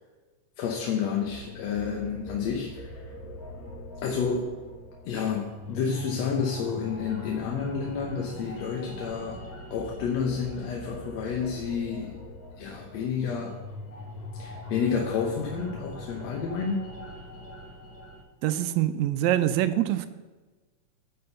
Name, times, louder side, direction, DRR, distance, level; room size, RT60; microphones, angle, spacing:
voice 1, 0.6-3.0 4.0-4.5 5.1-9.4 9.7-12.2 12.6-13.6 14.4-16.9, left 6 dB, 70° left, 0 dB, 2.0 m, -30 dB
sound 1, 1.2-18.2, left 1 dB, 50° left, 2.1 m, -42 dB
voice 2, 18.4-20.1, right 12 dB, 80° right, 11 dB, 1.8 m, -24 dB
10.5 x 4.4 x 6.7 m, 1.3 s
omnidirectional pair, 3.3 m